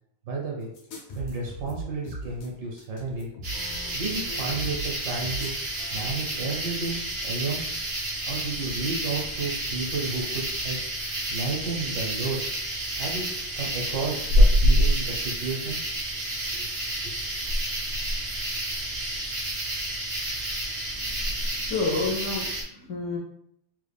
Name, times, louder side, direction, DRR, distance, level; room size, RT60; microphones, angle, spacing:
voice 1, 0.3-0.7 1.1-3.3 3.9-7.6 8.3-10.8 11.3-12.4 13.0-15.8 16.5-16.7 17.0-17.1, right 4 dB, 65° right, -2 dB, 1.3 m, -32 dB
sound 1, 0.7-6.6, right 1 dB, 90° left, 1.6 m, -39 dB
sound 2, 3.4-22.6, equal, 85° right, 0.5 m, -28 dB
voice 2, 21.0-23.2, left 3 dB, 70° left, -4 dB, 0.8 m, -30 dB
3.7 x 2.3 x 3.4 m, 0.73 s
omnidirectional pair, 2.2 m